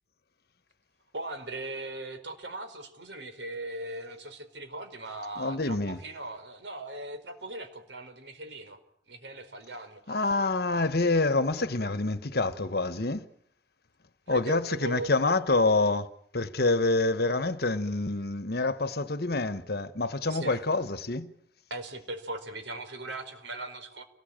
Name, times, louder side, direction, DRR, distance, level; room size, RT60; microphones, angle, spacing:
voice 1, 1.1-8.8 9.1-10.0 14.3-15.2 20.3-20.6 21.7-24.0, right 2 dB, 85° right, 4.8 m, -39 dB
voice 2, 5.4-6.0 10.1-13.3 14.3-21.3, left 2 dB, 60° left, 1.3 m, -27 dB
29.5 x 20.0 x 9.0 m
head